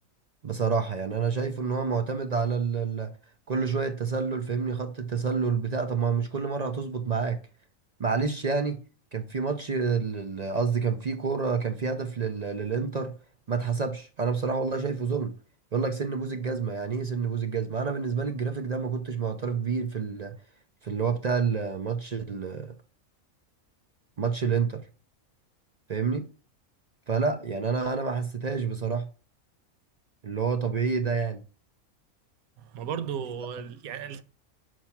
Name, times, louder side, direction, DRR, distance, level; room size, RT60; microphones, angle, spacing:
voice 1, 0.4-3.1 3.5-7.4 8.0-8.8 9.1-13.1 13.5-15.3 15.7-20.4 20.8-22.7 24.2-24.8 25.9-26.3 27.1-29.1 30.2-31.4, right 5 dB, 45° right, 0.5 m, -28 dB
voice 2, 32.6-34.2, right 8 dB, 85° right, 1.1 m, -35 dB
5.8 x 4.6 x 5.8 m
omnidirectional pair, 1.5 m